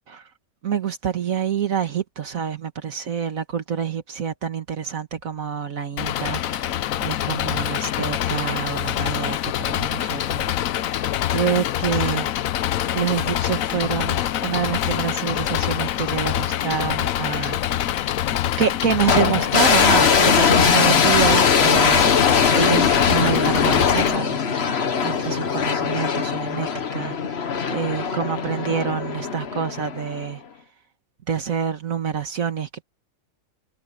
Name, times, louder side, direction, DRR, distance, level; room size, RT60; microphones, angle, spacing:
voice 1, 0.6-6.7 7.0-10.5 10.8-11.0 11.3-12.3 12.9-17.9 18.6-22.1 22.5-30.4 31.3-32.8, right 7 dB, 75° right, 1.8 m, -27 dB
Engine, 6.0-24.2, left 12 dB, 75° left, 1.1 m, -25 dB
sound 1, 19.1-30.3, left 6 dB, 50° left, 1.3 m, -20 dB
omnidirectional pair, 1.5 m